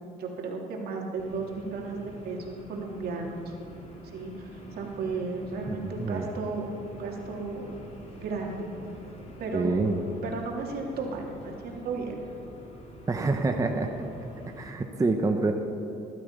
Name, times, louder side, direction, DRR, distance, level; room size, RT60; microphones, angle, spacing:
voice 1, 0.0-3.5 4.1-7.7 8.1-8.7 9.4-9.8 10.2-12.1, right 3 dB, 65° right, 0 dB, 2.9 m, -34 dB
sound 1, 1.2-14.7, equal, 40° left, 3.4 m, -47 dB
voice 2, 5.7-6.3 9.5-10.1 13.1-13.9 14.6-15.5, right 3 dB, 20° right, 4 dB, 1.0 m, -27 dB
20.5 x 12.5 x 5.4 m, 2.7 s
cardioid pair, 110°, 17 cm